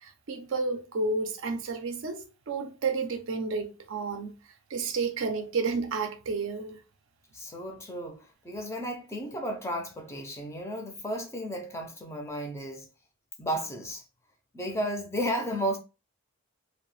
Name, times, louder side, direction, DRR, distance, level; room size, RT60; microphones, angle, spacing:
voice 1, 0.0-4.3 4.7-6.8, right 4 dB, 60° right, 0.4 m, -31 dB
voice 2, 7.3-12.9 13.4-14.0 14.5-15.8, equal, 15° left, 0.4 m, -33 dB
2.6 x 2.1 x 3.1 m
head